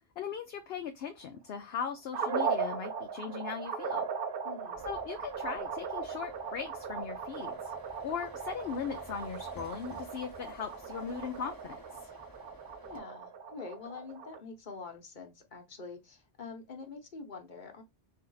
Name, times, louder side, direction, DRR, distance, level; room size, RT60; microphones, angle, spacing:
voice 1, 0.2-4.1 4.8-7.7 8.0-11.8 12.0-12.1, left 7 dB, 65° left, 0.8 m, -39 dB
sound 1, 2.1-14.4, right 6 dB, 60° right, 0.8 m, -38 dB
voice 2, 4.4-4.8 12.8-17.8, left 4 dB, 45° left, 1.2 m, -45 dB
sound 2, 4.7-13.0, left 2 dB, 20° left, 0.9 m, -54 dB
4.4 x 2.8 x 3.8 m
omnidirectional pair, 1.1 m